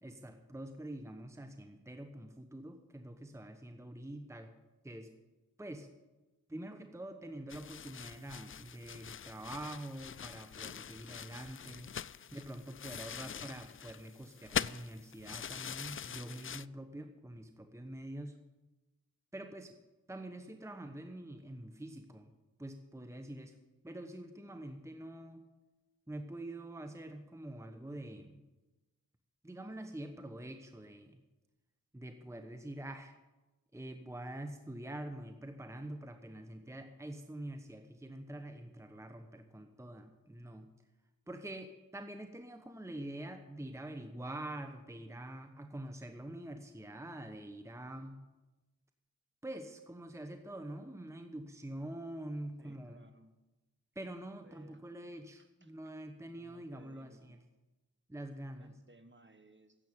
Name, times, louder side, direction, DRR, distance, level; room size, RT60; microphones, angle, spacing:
voice 1, 0.0-4.5 4.8-5.1 5.6-5.9 6.5-11.9 12.3-18.4 19.3-19.8 20.1-22.3 22.6-23.6 23.8-25.4 26.1-28.4 29.4-31.2 31.9-33.1 33.7-40.7 41.3-48.2 49.4-53.0 53.9-57.4 58.1-58.7, right 1 dB, 10° right, 7 dB, 1.1 m, -45 dB
sound 1, 7.5-16.7, left 8 dB, 35° left, 0.4 m, -43 dB
voice 2, 52.6-53.3 54.4-55.7 56.4-57.5 58.6-59.8, right 2 dB, 30° right, 9 dB, 1.5 m, -62 dB
11.0 x 8.3 x 9.6 m, 1.1 s
cardioid pair, 50°, 36 cm